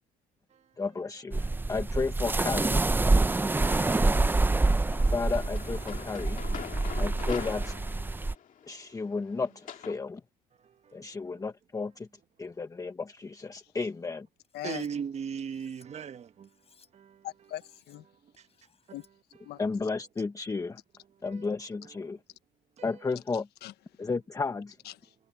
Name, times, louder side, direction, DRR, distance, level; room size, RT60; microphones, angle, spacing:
voice 1, 0.8-2.8 5.1-6.4 7.0-7.7 8.7-10.2 10.9-12.1 12.4-14.3 19.6-20.8 21.2-22.2 22.8-23.5 24.0-24.8, left 4 dB, 20° left, 1.1 m, -33 dB
sound 1, 1.3-8.3, right 2 dB, 10° right, 0.6 m, -26 dB
voice 2, 1.4-1.7 10.6-11.4 14.6-16.6 16.9-17.3 18.1-18.5 18.9-19.0 19.4-19.9 21.1-21.5 21.8-22.2 22.8-23.1, right 7 dB, 40° right, 1.2 m, -41 dB
sound 2, 3.6-4.2 4.9-10.0, left 9 dB, 50° left, 2.3 m, -44 dB
Cutlery silverware, 14.4-14.9 15.4-15.9 16.4-16.9 17.4-18.0 18.3-19.1, left 6 dB, 35° left, 7.3 m, -64 dB
voice 3, 14.5-14.9 17.2-18.0 18.9-19.0 19.4-19.6 23.6-24.1 24.8-25.1, left 14 dB, 75° left, 1.2 m, -41 dB
cardioid pair, 110°, 17 cm